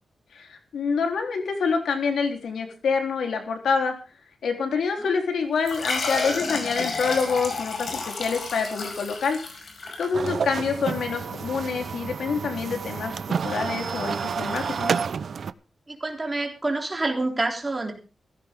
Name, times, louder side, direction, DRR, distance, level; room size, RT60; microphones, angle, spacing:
voice 1, 0.3-3.9 4.4-9.4 10.0-15.0, left 5 dB, 90° left, 4 dB, 3.8 m, -27 dB
sound 1, 5.6-10.8, left 3 dB, 55° left, 5.5 m, -31 dB
sound 2, 10.1-15.5, right 6 dB, 55° right, 0.7 m, -29 dB
voice 2, 15.9-17.9, right 2 dB, 20° right, 2 dB, 3.5 m, -28 dB
17.0 x 15.5 x 3.8 m, 0.34 s
wide cardioid pair, 175°, 0 cm